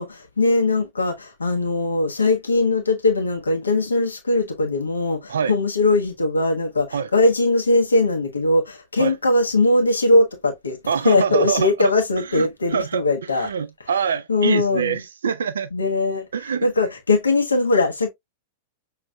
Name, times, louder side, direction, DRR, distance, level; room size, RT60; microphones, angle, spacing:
voice 1, 0.0-10.8 11.0-13.5 14.3-15.0 15.7-16.3 16.6-18.1, left 2 dB, 85° left, 1.2 m, -20 dB
voice 2, 10.9-13.0 13.3-15.7 16.3-16.7, right 7 dB, 75° right, 0.5 m, -25 dB
6.2 x 3.1 x 2.2 m
figure-of-eight pair, 100°, 0 cm